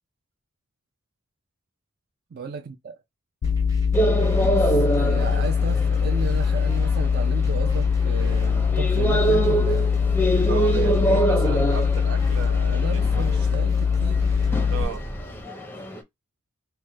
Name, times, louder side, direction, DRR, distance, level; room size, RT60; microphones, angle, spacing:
voice 1, 2.3-2.9 4.4-9.9 12.6-14.8, right 5 dB, 50° right, 0.4 m, -34 dB
sound 1, 3.4-14.8, left 6 dB, 65° left, 0.4 m, -22 dB
sound 2, 3.4-15.4, equal, 15° right, 0.8 m, -36 dB
sound 3, 3.9-16.0, right 2 dB, 10° left, 0.5 m, -26 dB
voice 2, 10.5-13.0 14.7-15.0, right 6 dB, 80° right, 0.8 m, -34 dB
3.3 x 2.1 x 3.1 m
head